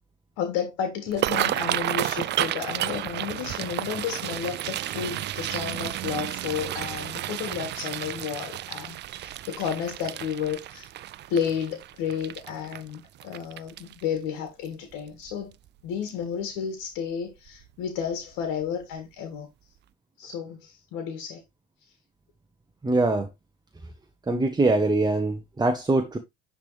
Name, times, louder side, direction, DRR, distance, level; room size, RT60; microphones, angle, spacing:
voice 1, 0.4-10.9 11.3-15.5 15.8-19.5 20.2-21.4, left 7 dB, 60° left, 1.7 m, -32 dB
sound 1, 1.1-14.2 14.7-14.9 15.3-15.7 16.1-16.2 17.5-17.7 18.0-18.1 18.6-18.7, right 13 dB, 30° right, 0.3 m, -32 dB
voice 2, 22.8-23.3 24.3-26.2, right 2 dB, 10° right, 0.9 m, -23 dB
10.5 x 3.5 x 3.2 m
hypercardioid pair, 75°, 38 cm